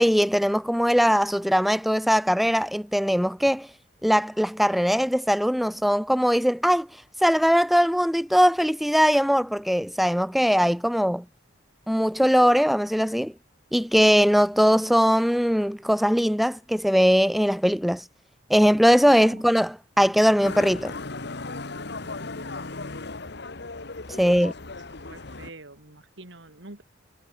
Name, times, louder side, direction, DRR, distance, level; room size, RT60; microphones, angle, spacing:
voice 1, 0.0-3.7 4.0-6.9 7.2-11.2 11.9-13.3 13.7-18.0 18.5-20.9 24.2-24.5, equal, ahead, 1.0 m, -20 dB
voice 2, 19.1-19.4 24.1-24.4 25.0-26.8, right 2 dB, 65° right, 2.8 m, -46 dB
Motorcycle, 20.4-25.5, left 3 dB, 60° left, 1.8 m, -36 dB
head